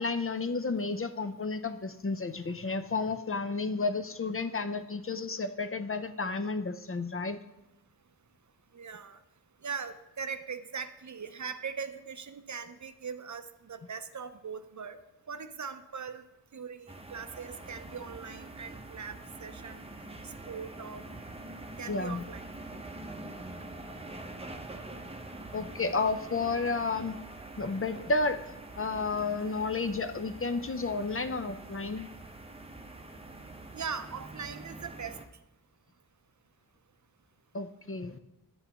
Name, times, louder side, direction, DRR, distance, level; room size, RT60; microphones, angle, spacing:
voice 1, 0.0-7.4 21.9-22.3 25.5-27.2 27.6-32.1 37.5-38.2, left 3 dB, 35° left, 9 dB, 0.5 m, -32 dB
voice 2, 8.7-9.2 9.6-15.0 15.3-16.2 16.5-19.1 19.4-19.8 20.2-21.0 21.8-22.4 33.7-35.2, right 6 dB, 50° right, 10 dB, 0.5 m, -40 dB
sound 1, 16.9-35.3, right 2 dB, 15° right, 0.7 m, -45 dB
10.0 x 8.0 x 2.9 m, 0.95 s
wide cardioid pair, 60°, 38 cm